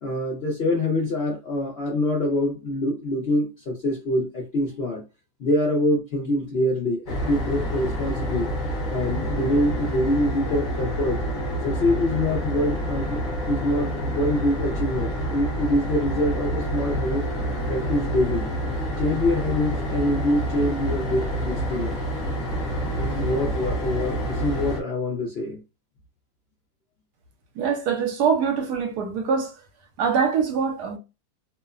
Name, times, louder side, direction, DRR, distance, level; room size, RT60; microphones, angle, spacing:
voice 1, 0.0-5.0 5.4-8.5 8.9-11.2 11.6-13.2 13.5-17.3 17.7-18.5 19.0-22.0 23.0-25.6, left 1 dB, 60° left, 0.6 m, -25 dB
sound 1, 7.1-24.8, right 1 dB, 35° left, 0.9 m, -28 dB
voice 2, 27.6-29.5 30.0-31.0, right 6 dB, 75° right, 1.2 m, -23 dB
2.9 x 2.1 x 2.4 m
omnidirectional pair, 1.8 m